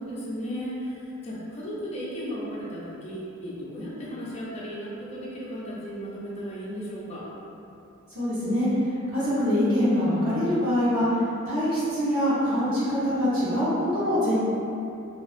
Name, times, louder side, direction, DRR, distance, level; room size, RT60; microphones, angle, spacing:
voice 1, 0.0-7.3, equal, 30° left, -7 dB, 0.4 m, -35 dB
voice 2, 8.1-8.7 9.1-14.3, equal, 70° right, -12 dB, 0.9 m, -24 dB
2.3 x 2.2 x 2.5 m, 2.7 s
head